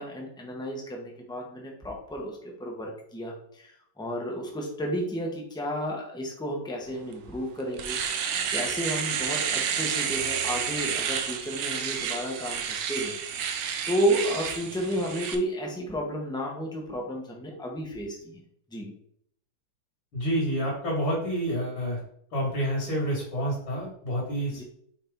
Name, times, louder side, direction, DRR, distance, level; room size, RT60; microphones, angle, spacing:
voice 1, 0.0-8.0 8.5-13.6 13.9-18.4 18.7-18.9 24.5-24.6, equal, 5° left, 0 dB, 0.5 m, -32 dB
Domestic sounds home sounds, 7.1-7.2 7.6-15.4, right 7 dB, 70° right, 1.3 m, -30 dB
voice 2, 20.1-22.0 22.3-24.6, equal, 65° left, -6 dB, 2.8 m, -28 dB
6.5 x 4.4 x 3.7 m, 0.67 s
omnidirectional pair, 2.4 m